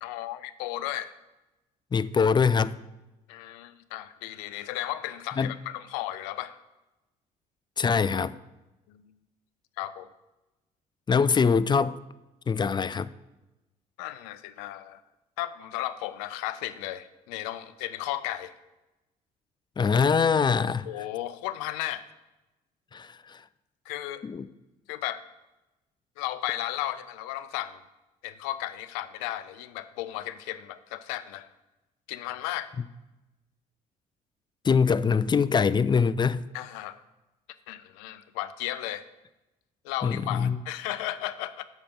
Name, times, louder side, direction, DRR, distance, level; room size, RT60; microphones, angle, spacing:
voice 1, 0.0-1.2 3.3-6.6 8.9-9.0 9.8-10.1 14.0-15.0 15.4-18.5 20.9-22.1 23.9-24.2 24.9-25.2 26.2-27.8 28.2-31.5 32.1-32.7 36.5-37.0 37.7-39.0 39.8-41.6, left 14 dB, 75° left, 14 dB, 0.5 m, -34 dB
voice 2, 1.9-2.8 5.4-5.5 7.8-8.3 11.1-12.0 12.5-13.1 19.8-20.9 22.9-23.4 24.2-24.5 34.6-36.5 40.0-40.6, left 5 dB, 25° left, 16 dB, 0.4 m, -23 dB
7.2 x 5.0 x 7.1 m, 1.0 s
hypercardioid pair, 50°, 19 cm